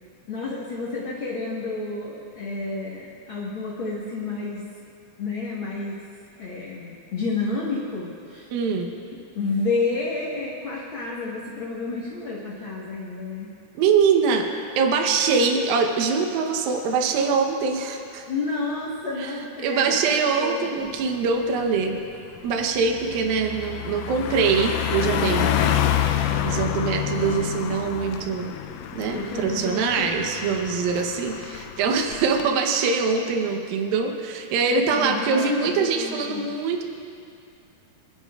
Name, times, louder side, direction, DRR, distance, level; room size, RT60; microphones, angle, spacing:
voice 1, 0.3-4.6 5.2-6.0 6.4-8.5 9.3-13.5 18.3-20.9 25.2-25.6 26.1-26.5 29.1-30.2 34.6-36.4, left 3 dB, 55° left, -6 dB, 1.5 m, -30 dB
voice 2, 8.5-8.9 13.8-14.5 14.8-18.3 19.2-19.3 19.6-22.0 22.4-25.9 26.4-28.5 29.0-36.8, right 5 dB, 75° right, 3 dB, 2.7 m, -23 dB
Car passing by, 20.9-21.1 21.5-32.5, left 10 dB, 85° left, 1.8 m, -28 dB
26.5 x 11.5 x 2.4 m, 2.4 s
omnidirectional pair, 4.3 m